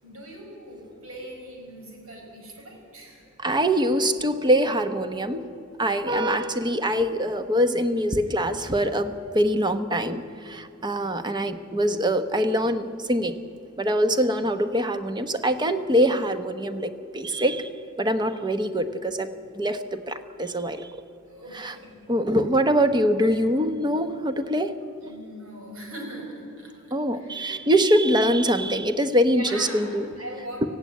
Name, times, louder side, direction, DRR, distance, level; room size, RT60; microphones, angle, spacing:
voice 1, 0.0-3.3 21.3-22.1 23.2-23.3 23.6-23.8 25.0-26.7 27.1-27.9 29.3-30.7, right 1 dB, 80° right, 1 dB, 5.6 m, -40 dB
voice 2, 3.4-5.5 5.8-13.4 13.8-17.7 18.0-20.9 21.5-21.7 22.1-24.7 26.9-30.1 30.6-30.7, equal, 20° right, 10 dB, 0.9 m, -24 dB
18.5 x 15.5 x 9.5 m, 2.6 s
head